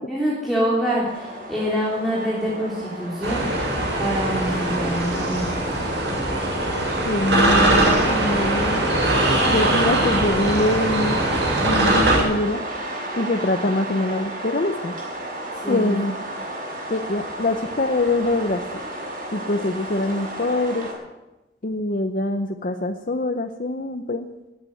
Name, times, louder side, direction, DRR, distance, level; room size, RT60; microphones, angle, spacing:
voice 1, 0.1-3.5 4.0-5.8 15.5-16.0, equal, ahead, -7 dB, 3.4 m, -25 dB
sound 1, 1.0-20.9, right 1 dB, 50° right, 5.8 m, -34 dB
sound 2, 3.2-12.2, right 1 dB, 75° right, 7.4 m, -21 dB
voice 2, 7.0-8.9 9.5-11.2 11.6-12.6 13.1-14.9 15.7-16.1 16.9-18.6 19.3-20.9 21.6-24.3, left 2 dB, 50° left, 6 dB, 0.7 m, -24 dB
20.0 x 9.1 x 7.9 m, 1.1 s
head